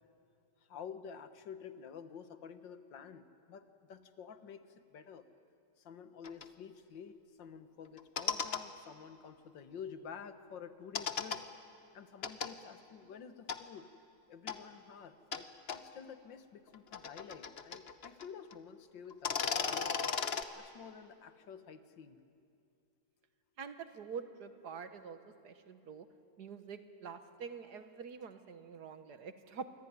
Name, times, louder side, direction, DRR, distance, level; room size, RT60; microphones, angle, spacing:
voice 1, 0.7-5.2 5.8-11.4 11.9-13.9 14.3-20.0 20.5-22.2, left 7 dB, 85° left, 10 dB, 2.0 m, -50 dB
sound 1, 6.2-6.4 8.0-8.6 10.9-11.4 12.2-12.5 13.5-13.6 14.5-14.6 15.3-15.4 15.7-15.8 16.7-18.3 18.5-18.6 19.1-20.4, left 6 dB, 40° left, 1.0 m, -35 dB
voice 2, 23.6-26.1 26.4-29.7, right 6 dB, 65° right, 9 dB, 1.8 m, -46 dB
26.5 x 23.0 x 9.6 m, 2.5 s
omnidirectional pair, 1.9 m